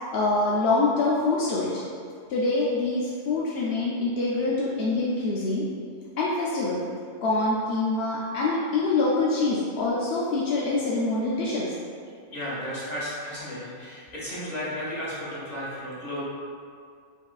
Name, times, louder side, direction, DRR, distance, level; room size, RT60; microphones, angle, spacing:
voice 1, 0.1-1.7 2.3-5.7 6.2-6.8 7.2-11.7, left 3 dB, 65° left, -6 dB, 0.6 m, -25 dB
voice 2, 12.3-16.2, equal, 30° left, -9 dB, 1.5 m, -34 dB
5.3 x 3.7 x 2.4 m, 2.2 s
omnidirectional pair, 1.5 m